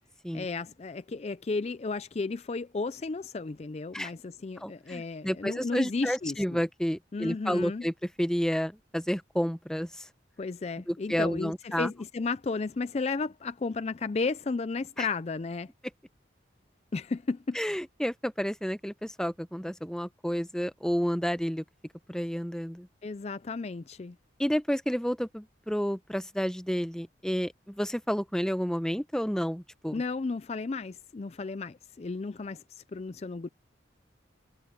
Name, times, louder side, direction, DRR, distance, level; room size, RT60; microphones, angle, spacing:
voice 1, 0.3-6.6 7.1-7.9 10.4-15.7 16.9-17.6 23.0-24.2 29.9-33.5, left 4 dB, 35° left, 0.4 m, -33 dB
voice 2, 4.6-10.1 10.9-11.9 15.0-15.1 17.5-21.6 22.1-22.9 24.4-30.0, equal, 5° left, 0.8 m, -30 dB
head